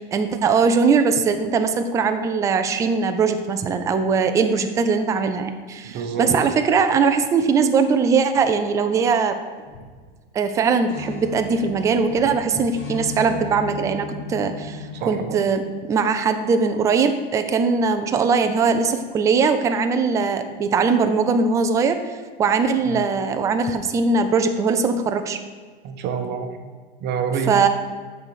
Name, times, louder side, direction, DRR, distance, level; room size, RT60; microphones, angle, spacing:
voice 1, 0.0-9.4 10.3-15.6 15.9-25.4 27.5-27.7, right 5 dB, 10° right, 7 dB, 0.3 m, -20 dB
voice 2, 5.8-6.3 14.9-15.4 22.9-23.0 25.8-26.6 27.0-27.7, right 6 dB, 35° right, 6 dB, 0.9 m, -27 dB
sound 1, 9.6-10.0 10.4-10.5 10.9-15.4, left 4 dB, 40° left, 1.8 m, -35 dB
8.7 x 4.0 x 6.4 m, 1.5 s
supercardioid pair, 145°, 29 cm